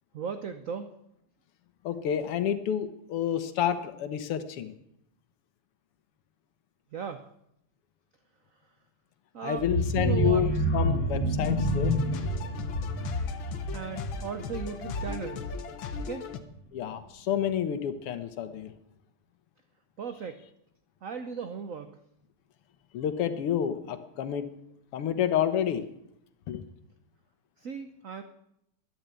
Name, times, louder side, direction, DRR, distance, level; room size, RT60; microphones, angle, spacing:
voice 1, 0.1-0.9 6.9-7.2 9.3-9.7 10.0-10.5 13.7-15.5 16.1-16.3 20.0-20.4 21.0-22.0 27.6-28.2, right 6 dB, 65° right, 9 dB, 0.8 m, -37 dB
voice 2, 1.8-4.7 9.4-11.9 16.7-18.7 22.9-24.5 24.9-25.8 26.5-26.6, left 9 dB, 90° left, 11 dB, 2.0 m, -29 dB
sound 1, 9.6-15.3 15.7-16.0 16.3-16.4, equal, 45° left, 2.6 m, -29 dB
sound 2, 11.4-16.4, left 4 dB, 65° left, 1.8 m, -38 dB
12.5 x 10.5 x 8.2 m, 0.77 s
omnidirectional pair, 2.4 m